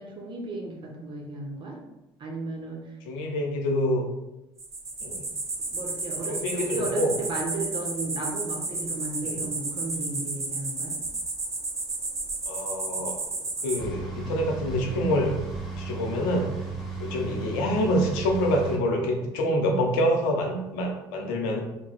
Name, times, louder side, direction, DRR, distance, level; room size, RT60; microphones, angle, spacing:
voice 1, 0.0-1.8 2.2-2.9 5.7-11.0, right 2 dB, 45° right, 1 dB, 1.0 m, -34 dB
voice 2, 3.1-4.0 5.0-5.3 6.3-7.1 9.2-9.5 12.4-13.2 13.6-15.3 15.8-16.5 17.0-21.6, equal, 85° left, 1 dB, 0.7 m, -26 dB
sound 1, 4.6-13.8, right 3 dB, 25° right, 0.8 m, -32 dB
sound 2, 13.8-18.8, right 4 dB, ahead, 1.1 m, -35 dB
3.3 x 2.2 x 4.0 m, 0.94 s
supercardioid pair, 75°, 11 cm